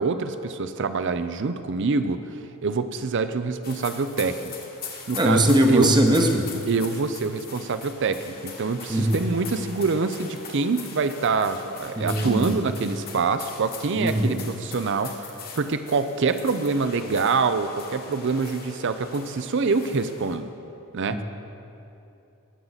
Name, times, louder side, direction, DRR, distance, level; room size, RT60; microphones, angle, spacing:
voice 1, 0.0-2.2 2.6-4.5 5.1-5.9 6.7-20.5 20.9-21.2, right 4 dB, 55° right, 11 dB, 0.5 m, -25 dB
sound 1, 3.6-20.4, left 5 dB, 40° left, 1.3 m, -41 dB
voice 2, 5.2-6.5 8.9-9.2 12.0-12.6 14.0-14.4 21.1-21.2, right 1 dB, 20° right, 3 dB, 0.9 m, -21 dB
19.0 x 7.4 x 4.0 m, 2.8 s
head